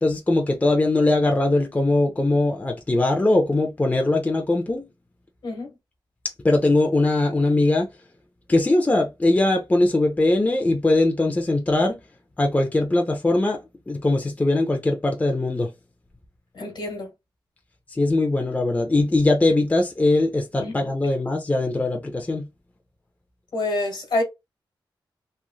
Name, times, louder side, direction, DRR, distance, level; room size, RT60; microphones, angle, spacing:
voice 1, 0.0-4.8 6.4-7.9 8.5-12.0 12.4-13.6 13.9-15.7 17.9-22.5, left 2 dB, 20° left, 0.5 m, -21 dB
voice 2, 5.4-5.7 16.5-17.1 20.6-20.7 23.5-24.2, left 2 dB, 65° left, 1.4 m, -27 dB
3.1 x 2.4 x 2.3 m
wide cardioid pair, 100°, 8 cm